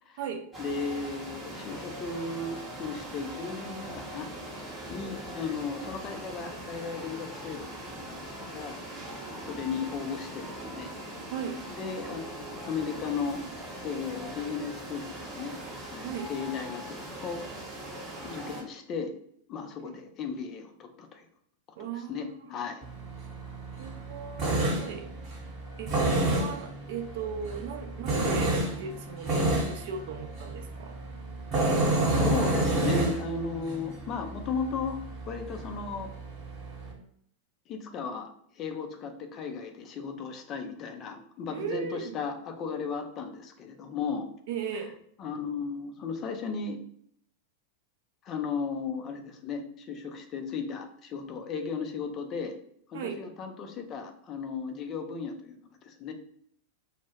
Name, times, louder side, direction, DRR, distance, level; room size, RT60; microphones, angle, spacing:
sound 1, 0.5-18.6, right 1 dB, 10° right, 0.7 m, -41 dB
voice 1, 0.6-4.3 4.9-8.8 9.5-10.9 11.7-13.4 13.8-15.6 15.9-17.4 18.2-19.1 19.5-21.3 21.9-22.9 32.1-35.0 35.3-36.1 37.7-38.3 38.6-44.3 44.7-44.8 45.2-46.8 48.2-52.5 52.9-56.1, left 5 dB, 30° left, 5 dB, 0.4 m, -35 dB
voice 2, 9.0-9.3 11.3-11.6 16.0-16.3 19.8-19.9 21.8-22.4 23.8-25.1 25.8-31.0 41.5-42.2 44.5-44.9 52.9-53.2, right 6 dB, 50° right, 4 dB, 0.4 m, -37 dB
Tools, 22.8-36.9, right 2 dB, 35° right, 1.0 m, -30 dB
2.1 x 2.0 x 3.2 m, 0.64 s
figure-of-eight pair, 90°, 0 cm